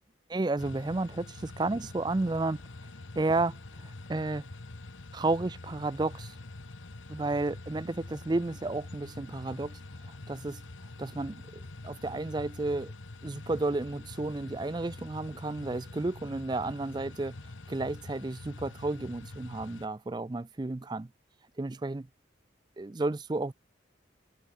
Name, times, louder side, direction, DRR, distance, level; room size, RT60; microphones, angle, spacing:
voice 1, 0.3-2.6 3.2-4.4 5.1-6.3 7.1-9.8 10.3-10.6 11.0-12.9 13.2-17.4 17.7-21.1 21.6-22.1 22.8-23.5, right 2 dB, 20° right, 0.4 m, -32 dB
sound 1, 0.6-19.9, left 2 dB, 90° left, 1.2 m, -45 dB
head